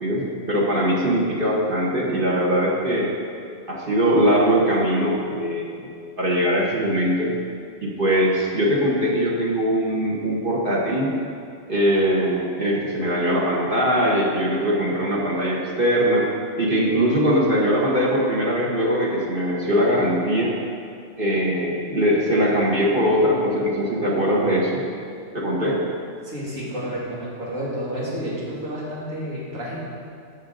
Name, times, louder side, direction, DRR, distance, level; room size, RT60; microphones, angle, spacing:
voice 1, 0.0-3.1 3.7-5.7 6.2-7.3 7.8-11.1 11.7-16.3 16.6-20.5 21.2-24.8 25.3-25.8, equal, 45° right, -4 dB, 1.4 m, -21 dB
voice 2, 26.2-29.9, equal, 90° right, -7 dB, 2.8 m, -30 dB
13.5 x 6.3 x 3.9 m, 2.3 s
omnidirectional pair, 1.3 m